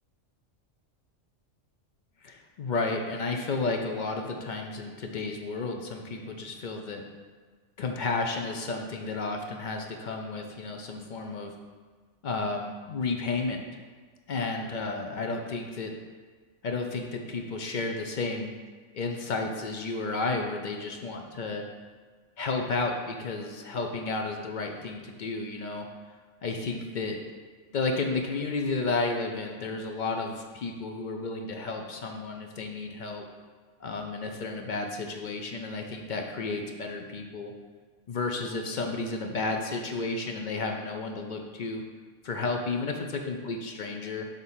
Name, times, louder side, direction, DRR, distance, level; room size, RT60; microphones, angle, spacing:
voice 1, 2.2-7.0 7.8-11.5 12.2-13.7 14.3-15.9 16.6-18.5 18.9-21.6 22.4-25.9 26.4-27.2 27.7-33.2 33.8-37.5 38.1-41.8 42.2-44.3, left 3 dB, 55° left, 3 dB, 0.5 m, -32 dB
6.1 x 3.6 x 5.5 m, 1.5 s
omnidirectional pair, 1.3 m